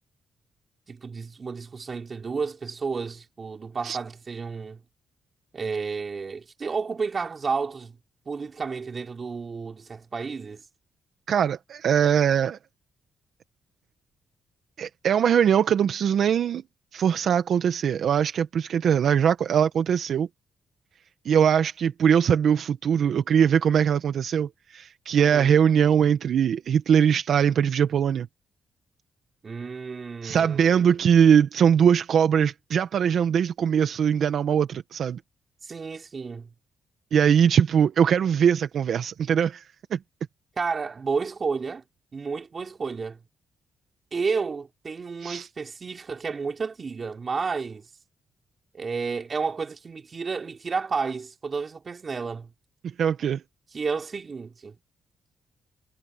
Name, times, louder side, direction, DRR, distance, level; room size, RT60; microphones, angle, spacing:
voice 1, 0.9-4.8 5.5-8.0 8.2-10.6 25.1-25.6 29.4-31.0 35.6-36.5 40.6-41.8 42.1-43.2 44.1-47.9 48.7-52.5 53.7-54.7, right 5 dB, 40° right, 3.5 m, -31 dB
voice 2, 11.3-12.6 14.8-16.6 16.9-20.3 21.2-28.3 30.2-35.2 37.1-39.6 39.9-40.0 45.2-45.5 53.0-53.4, right 8 dB, 65° right, 1.0 m, -21 dB
cardioid pair, 90°, 0 cm